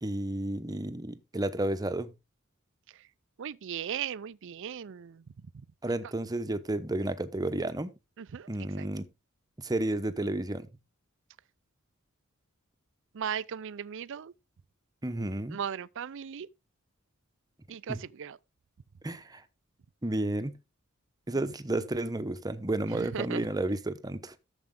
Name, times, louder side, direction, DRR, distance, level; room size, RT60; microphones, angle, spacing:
voice 1, 0.0-2.1 5.8-7.9 8.5-9.1 9.6-10.7 15.0-15.6 17.9-18.0 19.0-19.4 20.0-20.6 21.3-24.3, right 1 dB, 20° right, 0.9 m, -32 dB
voice 2, 3.4-5.3 8.2-8.5 8.8-8.9 13.1-14.3 15.5-16.5 17.7-18.4 22.9-23.5, right 8 dB, 65° right, 0.5 m, -37 dB
13.0 x 7.1 x 3.7 m
head